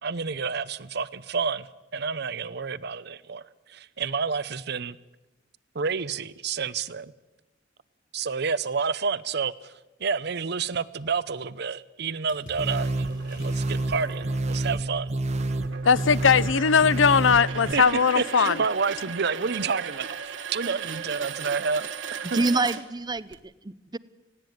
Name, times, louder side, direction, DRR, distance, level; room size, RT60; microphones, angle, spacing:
voice 1, 0.0-1.7 1.9-3.4 3.7-5.0 5.7-7.1 8.1-9.7 10.0-15.1 17.7-17.8 18.1-22.4, right 5 dB, 60° right, 0.8 m, -29 dB
Water / Splash splatter, 12.3-14.7 18.0-18.1 18.3-19.1 20.2-20.3, left 2 dB, 45° left, 6.1 m, -49 dB
sound 1, 12.6-17.7, right 2 dB, 35° right, 1.2 m, -29 dB
sound 2, 12.8-23.4, right 7 dB, 75° right, 1.6 m, -38 dB
voice 2, 15.8-18.6, left 6 dB, 85° left, 0.6 m, -19 dB
voice 3, 22.3-24.0, right 3 dB, 20° right, 0.6 m, -27 dB
20.0 x 16.5 x 9.4 m
head